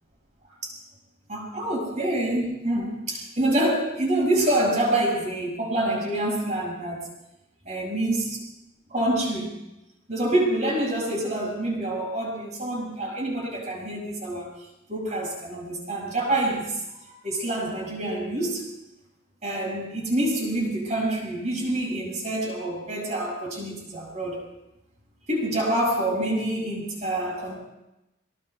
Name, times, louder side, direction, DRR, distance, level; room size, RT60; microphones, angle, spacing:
voice 1, 1.3-7.1 7.6-8.3 8.9-9.5 10.1-14.5 14.9-16.8 17.1-18.6 19.4-24.4 25.3-27.5, right 1 dB, 35° right, -3 dB, 6.5 m, -26 dB
29.0 x 21.0 x 2.3 m, 0.92 s
head